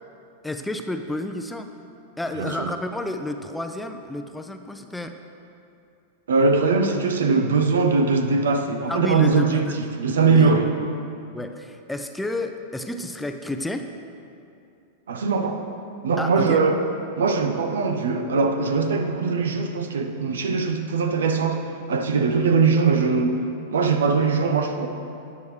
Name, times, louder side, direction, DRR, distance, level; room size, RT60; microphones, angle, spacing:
voice 1, 0.4-1.7 2.2-5.2 8.9-9.8 10.3-10.5 11.3-13.9 16.2-16.6, left 1 dB, 5° left, 7 dB, 0.6 m, -30 dB
voice 2, 2.4-2.7 6.3-9.6 10.0-10.7 15.1-15.6 16.0-16.8 17.2-21.6 21.9-23.4 23.7-24.9, right 4 dB, 70° right, 6 dB, 0.8 m, -21 dB
13.0 x 9.4 x 3.3 m, 2.6 s
figure-of-eight pair, 95°, 0 cm